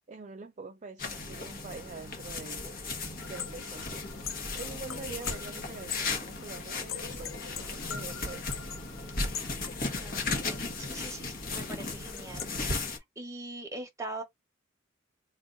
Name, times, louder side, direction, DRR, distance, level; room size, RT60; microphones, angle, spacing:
voice 1, 0.1-2.8 3.3-4.0 4.5-8.7, right 4 dB, 35° right, 0.4 m, -45 dB
sound 1, 1.0-13.0, left 3 dB, 45° left, 1.2 m, -36 dB
sound 2, 3.2-12.5, left 8 dB, 85° left, 0.8 m, -43 dB
voice 2, 9.8-12.7 12.9-14.2, right 2 dB, 15° right, 1.0 m, -42 dB
3.5 x 2.4 x 3.9 m
head